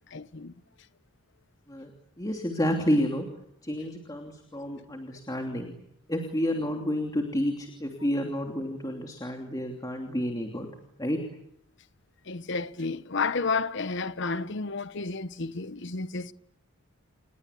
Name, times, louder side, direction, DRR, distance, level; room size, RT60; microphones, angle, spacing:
voice 1, 0.1-0.5 12.3-16.3, left 4 dB, 55° left, 1.0 m, -31 dB
voice 2, 2.2-3.3 3.6-5.7 6.1-10.7 11.0-11.2, equal, 15° left, 2.9 m, -30 dB
29.5 x 21.0 x 8.4 m
head